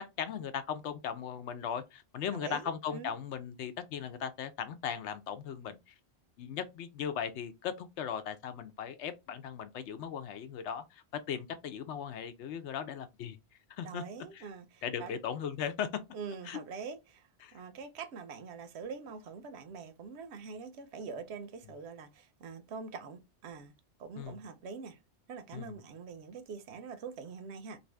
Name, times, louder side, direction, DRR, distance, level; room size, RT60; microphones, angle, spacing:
voice 1, 0.0-5.9 6.4-13.4 13.7-14.0 14.3-14.5 14.8-16.0 16.4-16.6 17.4-17.6 24.1-24.4 25.5-25.8, left 8 dB, 75° left, 0.9 m, -38 dB
voice 2, 2.3-3.1 13.8-15.2 16.1-23.7 24.0-25.0 25.3-27.8, right 5 dB, 70° right, 0.8 m, -44 dB
2.7 x 2.7 x 3.2 m
omnidirectional pair, 1.2 m